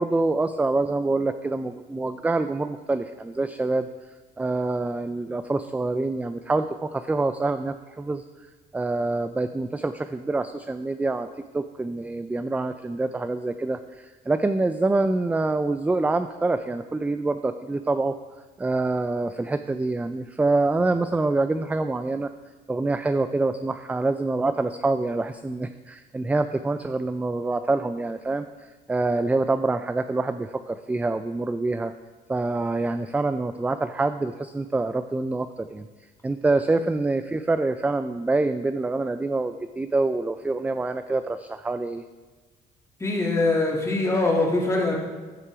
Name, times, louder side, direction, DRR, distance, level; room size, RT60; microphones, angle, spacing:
voice 1, 0.0-3.9 4.4-11.3 11.5-18.1 18.6-22.3 22.7-31.9 32.3-35.9 36.2-42.0, right 2 dB, 10° right, 10 dB, 0.4 m, -26 dB
voice 2, 43.0-45.0, left 2 dB, 15° left, -2 dB, 2.6 m, -23 dB
14.0 x 5.9 x 4.8 m, 1.3 s
cardioid pair, 110°, 17 cm